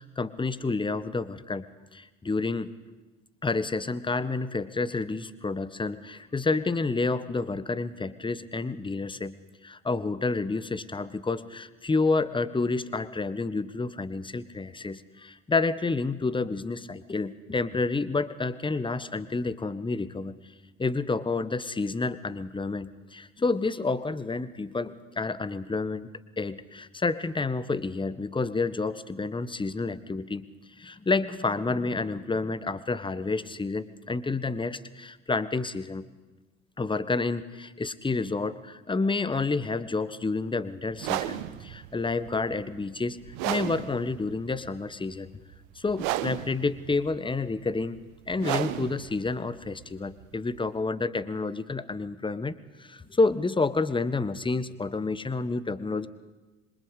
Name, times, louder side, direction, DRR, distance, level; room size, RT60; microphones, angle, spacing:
voice 1, 0.0-1.7 1.9-2.7 3.4-9.3 9.6-20.4 20.8-26.1 26.4-30.4 30.8-36.1 36.8-45.3 45.7-48.0 48.3-56.1, left 3 dB, 10° left, 15 dB, 1.4 m, -29 dB
sound 1, 40.9-50.8, right 14 dB, 55° right, 1.3 m, -34 dB
26.5 x 23.5 x 8.3 m, 1.2 s
figure-of-eight pair, 65°, 40 cm